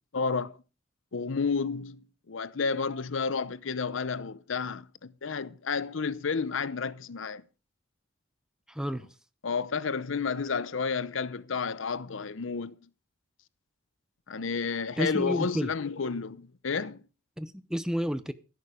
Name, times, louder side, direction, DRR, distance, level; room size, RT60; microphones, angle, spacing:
voice 1, 0.1-0.6 1.1-7.4 9.4-12.8 14.3-17.0, left 5 dB, 90° left, 0.7 m, -31 dB
voice 2, 8.7-9.0 15.0-15.7 17.4-18.3, equal, 5° right, 0.8 m, -31 dB
12.0 x 11.0 x 5.0 m
head